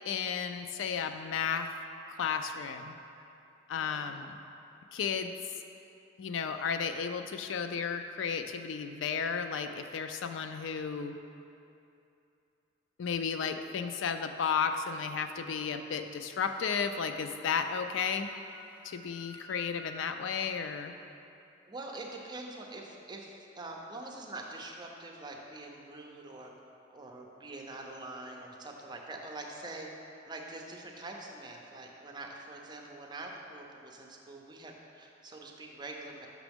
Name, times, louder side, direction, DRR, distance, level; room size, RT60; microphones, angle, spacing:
voice 1, 0.0-1.7 2.2-3.0 3.7-4.4 4.9-5.3 6.2-11.2 13.0-18.3 18.8-20.9, left 6 dB, 80° left, 8 dB, 0.4 m, -33 dB
voice 2, 3.8-4.2 21.7-26.5 26.9-36.3, right 2 dB, 25° right, 0 dB, 0.6 m, -44 dB
Wind instrument woodwind instrument, 17.3-20.0, left 1 dB, 10° left, 1.0 m, -53 dB
6.1 x 5.8 x 3.5 m, 2.7 s
head